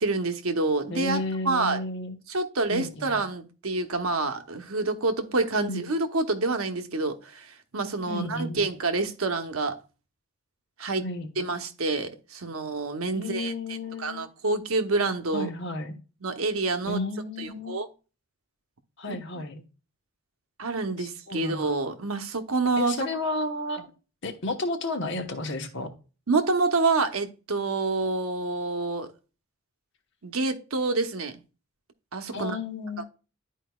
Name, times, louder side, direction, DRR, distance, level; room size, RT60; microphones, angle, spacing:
voice 1, 0.0-1.2 1.4-1.8 2.3-9.8 10.8-11.0 11.4-13.5 14.0-15.5 16.2-17.0 17.4-17.9 20.6-23.0 26.3-29.1 30.2-31.4 32.1-32.6, right 3 dB, 85° right, 0.9 m, -27 dB
voice 2, 0.9-2.2 2.7-3.2 5.6-5.9 8.1-8.7 11.0-11.3 13.1-14.3 15.3-16.0 16.9-17.8 19.0-19.6 21.0-21.9 22.8-23.9 24.2-25.9 32.3-33.0, left 2 dB, 55° left, 1.1 m, -32 dB
11.5 x 4.6 x 2.3 m
head